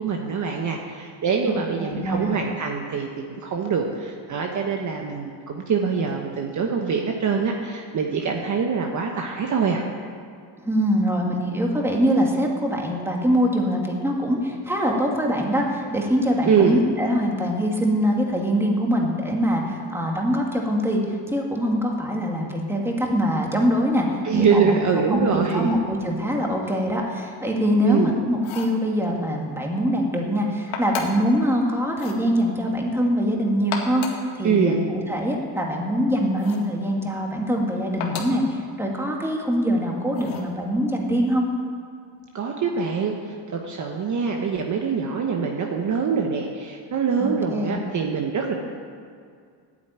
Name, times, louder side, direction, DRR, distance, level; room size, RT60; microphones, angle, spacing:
voice 1, 0.0-3.1 3.4-9.8 16.5-16.8 24.2-25.8 27.8-28.1 34.4-34.8 42.3-48.5, right 6 dB, 40° right, 1 dB, 1.2 m, -24 dB
voice 2, 1.4-2.4 10.6-24.1 24.3-24.8 25.1-41.4 47.2-47.8, equal, 5° right, 0 dB, 2.1 m, -23 dB
sound 1, 28.3-28.8 30.7-31.3 31.9-32.2 33.5-34.3 36.4-36.7 38.0-38.4 40.1-40.5, left 5 dB, 85° left, 2.0 m, -33 dB
11.5 x 9.4 x 9.1 m, 2.2 s
cardioid pair, 130°, 46 cm